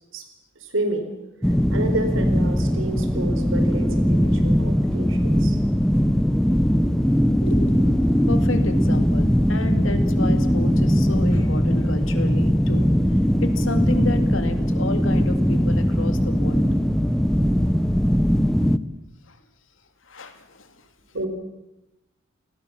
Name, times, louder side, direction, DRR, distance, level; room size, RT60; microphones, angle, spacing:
voice 1, 0.6-1.1 1.7-5.6 21.1-21.3, right 1 dB, 90° right, 7 dB, 4.6 m, -29 dB
sound 1, 1.4-18.8, equal, 5° left, 0.8 m, -20 dB
voice 2, 7.4-7.8 8.3-12.9 13.4-16.7 19.3-19.4 20.1-20.7, left 2 dB, 80° left, 8 dB, 2.7 m, -31 dB
29.0 x 19.0 x 7.4 m, 0.93 s
head